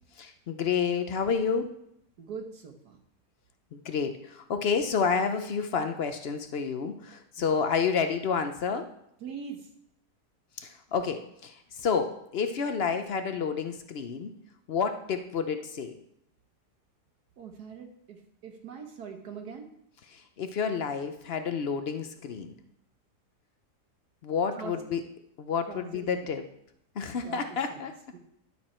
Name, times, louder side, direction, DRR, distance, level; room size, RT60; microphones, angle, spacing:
voice 1, 0.2-1.7 3.7-8.9 10.6-14.3 14.7-16.0 20.1-22.5 24.2-25.0 25.4-26.4 27.0-27.9, left 6 dB, 60° left, 8 dB, 0.6 m, -29 dB
voice 2, 2.2-3.0 7.4-7.5 9.2-9.7 17.4-19.7 24.6-24.7 25.7-26.0 27.2-27.9, right 6 dB, 70° right, 3 dB, 1.5 m, -42 dB
11.0 x 7.0 x 4.3 m, 0.74 s
omnidirectional pair, 1.8 m